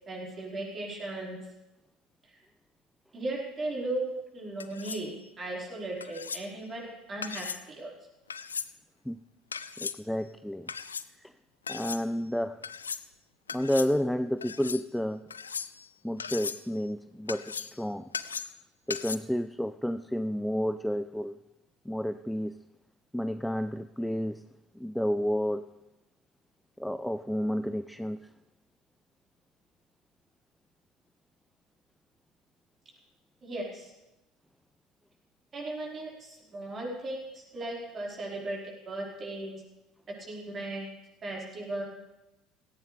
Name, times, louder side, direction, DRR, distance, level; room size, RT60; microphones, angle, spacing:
voice 1, 0.1-1.4 3.1-4.0 4.3-7.9 33.4-33.9 35.5-39.6 40.3-40.9 41.2-41.8, right 2 dB, 30° right, -3 dB, 4.9 m, -37 dB
sound 1, 4.6-5.1 6.0-6.4 7.2-7.6 8.3-8.7 9.5-10.0 10.7-11.1 11.7-12.0 12.6-13.1 13.5-13.9 14.4-14.8 15.3-15.9 16.2-16.6 17.3-17.8 18.1-18.6 18.9-19.2, left 6 dB, 85° left, 0.4 m, -37 dB
voice 2, 9.8-10.7 11.2-11.3 11.7-12.6 13.5-15.3 16.0-18.1 18.9-21.4 21.9-22.6 23.1-24.5 24.8-25.7 26.8-28.3, equal, ahead, 12 dB, 0.4 m, -31 dB
17.5 x 15.0 x 3.4 m, 0.96 s
figure-of-eight pair, 65°, 0 cm